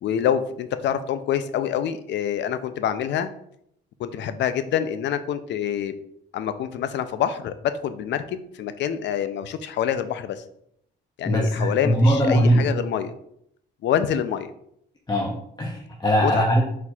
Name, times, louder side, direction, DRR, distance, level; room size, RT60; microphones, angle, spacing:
voice 1, 0.0-3.3 4.0-5.9 6.3-10.4 11.2-13.1 13.8-14.5 16.2-16.5, left 9 dB, 65° left, 11 dB, 0.4 m, -26 dB
voice 2, 11.2-12.7 15.1-16.6, equal, 20° left, -2 dB, 0.6 m, -21 dB
4.3 x 4.0 x 2.3 m, 0.73 s
cardioid pair, 90°, 20 cm